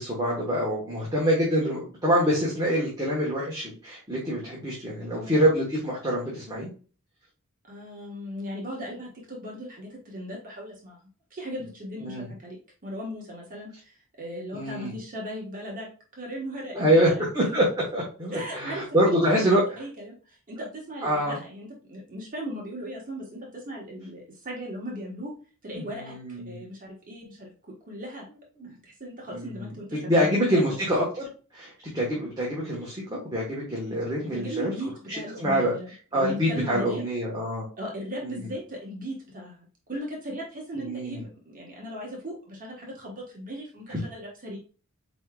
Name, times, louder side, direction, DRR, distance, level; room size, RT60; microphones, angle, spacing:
voice 1, 0.0-6.7 12.0-12.2 14.5-14.9 16.7-17.7 17.9-19.6 21.0-21.4 25.7-26.6 28.6-28.7 29.3-31.3 31.5-34.7 35.4-35.7 36.1-37.7 38.2-38.5 40.8-41.2 43.9-44.0, equal, 20° right, -5 dB, 1.2 m, -25 dB
voice 2, 7.6-11.0 11.3-12.6 12.8-15.9 16.2-17.2 18.3-19.5 19.8-25.3 25.6-27.5 27.9-28.3 28.6-30.8 34.3-37.0 37.8-44.6, equal, 40° right, -2 dB, 1.3 m, -38 dB
4.6 x 4.2 x 2.3 m, 0.37 s
head